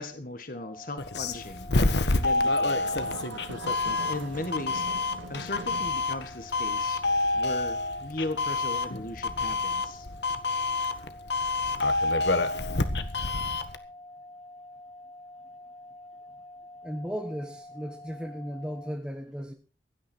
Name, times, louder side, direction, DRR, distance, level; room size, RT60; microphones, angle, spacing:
voice 1, 0.0-1.7 2.2-2.9 4.1-4.9 5.3-7.0 7.3-10.1, left 2 dB, 50° left, 1.6 m, -37 dB
sound 1, 0.5-19.0, left 1 dB, 15° left, 1.1 m, -47 dB
Doorbell, 1.0-13.8, left 3 dB, 65° left, 1.4 m, -28 dB
sound 2, 2.8-5.9, right 3 dB, 90° right, 1.1 m, -41 dB
voice 2, 16.8-19.5, equal, 5° right, 1.3 m, -36 dB
16.5 x 12.0 x 4.4 m
head